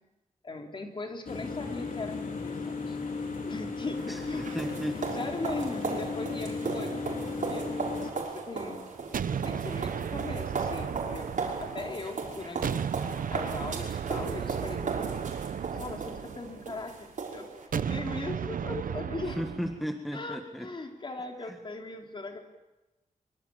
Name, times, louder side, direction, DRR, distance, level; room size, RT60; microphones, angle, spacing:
voice 1, 0.4-3.0 3.5-4.6 5.1-7.7 8.0-8.8 9.3-11.3 11.6-12.9 13.3-15.0 15.7-19.4 20.1-22.4, left 3 dB, 35° left, 3 dB, 3.5 m, -39 dB
sound 1, 1.3-8.1, left 4 dB, 80° left, 4.4 m, -35 dB
sound 2, 4.0-17.7, right 4 dB, 70° right, 5.8 m, -37 dB
voice 2, 4.1-5.0 19.4-20.7 21.5-21.6, equal, ahead, 4 dB, 1.6 m, -35 dB
sound 3, 9.1-12.2 12.6-16.9 17.7-19.8, right 8 dB, 90° right, 0.8 m, -34 dB
24.5 x 24.0 x 8.8 m, 1.0 s
wide cardioid pair, 175°, 14 cm